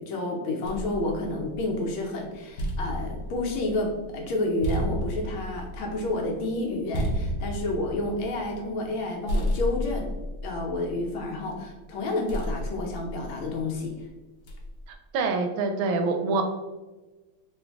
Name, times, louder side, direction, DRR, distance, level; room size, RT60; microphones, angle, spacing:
voice 1, 0.0-10.1 10.4-14.1, left 2 dB, 85° left, 0 dB, 1.6 m, -30 dB
sound 1, 0.6-1.9 2.3-9.0 9.3-11.5 12.3-13.8 14.5-14.9, equal, 65° left, 1.2 m, -32 dB
voice 2, 14.9-16.4, right 4 dB, 80° right, 5 dB, 1.3 m, -26 dB
3.9 x 2.6 x 3.4 m, 1.2 s
omnidirectional pair, 2.2 m